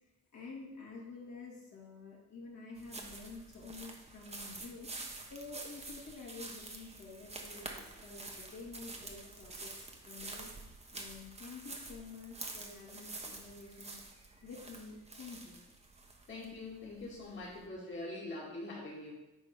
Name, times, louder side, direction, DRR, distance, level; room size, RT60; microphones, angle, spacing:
voice 1, 0.3-4.9 5.3-10.5 10.9-13.9 14.4-15.6, left 3 dB, 65° left, -4 dB, 2.5 m, -49 dB
sound 1, 2.8-17.6, right 2 dB, 20° right, 1.1 m, -48 dB
voice 2, 16.3-19.1, left 2 dB, 40° left, -5 dB, 2.1 m, -43 dB
8.8 x 4.8 x 3.7 m, 1.0 s
cardioid pair, 90°, 30 cm